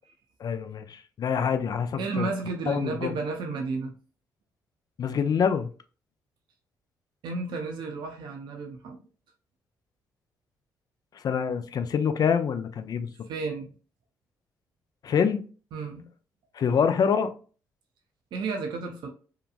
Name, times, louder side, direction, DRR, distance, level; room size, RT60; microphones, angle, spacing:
voice 1, 0.4-2.3 2.7-3.1 5.0-5.7 11.2-13.1 15.0-15.4 16.5-17.3, left 7 dB, 50° left, 0.4 m, -26 dB
voice 2, 2.0-3.9 7.2-9.0 13.3-13.7 15.7-16.1 18.3-19.1, right 4 dB, 60° right, 0.5 m, -32 dB
2.8 x 2.2 x 2.4 m
hypercardioid pair, 45°, 9 cm